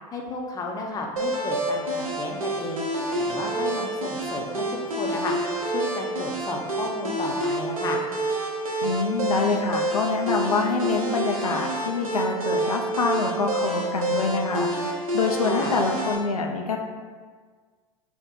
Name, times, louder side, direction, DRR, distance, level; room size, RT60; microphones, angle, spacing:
voice 1, 0.1-2.8 3.2-5.3 5.7-8.0 15.5-15.7, left 3 dB, 20° left, 1 dB, 0.6 m, -33 dB
sound 1, 1.2-16.2, right 1 dB, 75° right, 0.7 m, -28 dB
voice 2, 8.8-16.8, left 4 dB, 85° left, 2 dB, 0.4 m, -26 dB
4.2 x 2.1 x 3.8 m, 1.5 s
figure-of-eight pair, 85°, 18 cm